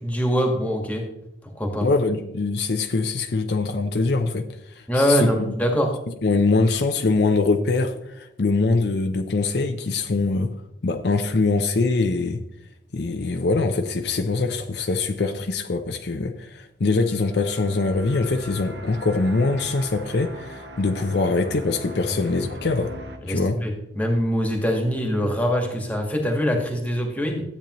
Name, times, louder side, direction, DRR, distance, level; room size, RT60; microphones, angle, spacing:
voice 1, 0.0-1.0 1.4-1.9 4.9-5.9 22.1-22.2 23.2-27.4, equal, 10° left, 1 dB, 1.5 m, -23 dB
voice 2, 1.8-4.5 5.0-5.5 6.2-10.5 10.8-12.4 12.9-22.9 23.3-23.6, left 3 dB, 60° left, 6 dB, 0.6 m, -23 dB
sound 1, 17.0-23.2, equal, 70° right, 1.1 m, -40 dB
13.0 x 8.4 x 3.0 m, 0.87 s
head